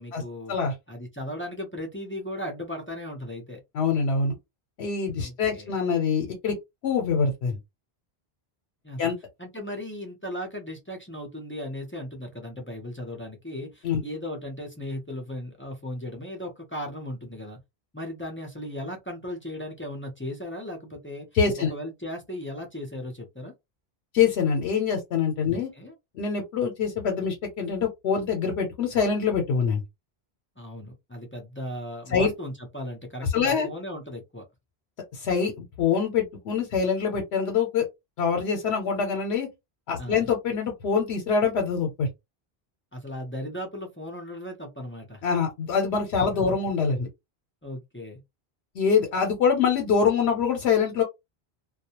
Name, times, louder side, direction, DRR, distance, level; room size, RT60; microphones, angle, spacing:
voice 1, 0.0-0.6 0.9-3.6 5.2-5.7 8.8-9.1 9.4-17.6 17.9-21.3 21.7-23.5 25.5-25.9 30.6-34.4 40.0-40.3 42.9-45.2 46.5-46.6 47.6-48.2, left 1 dB, 15° left, 0.5 m, -36 dB
voice 2, 3.7-4.3 4.8-6.5 6.8-7.6 9.0-9.2 13.8-14.0 21.3-21.7 24.1-25.7 26.1-29.8 32.1-32.3 33.3-33.7 35.1-37.8 38.2-39.5 39.9-42.1 45.2-47.1 48.8-51.0, left 6 dB, 85° left, 0.9 m, -24 dB
2.3 x 2.1 x 2.8 m
omnidirectional pair, 1.1 m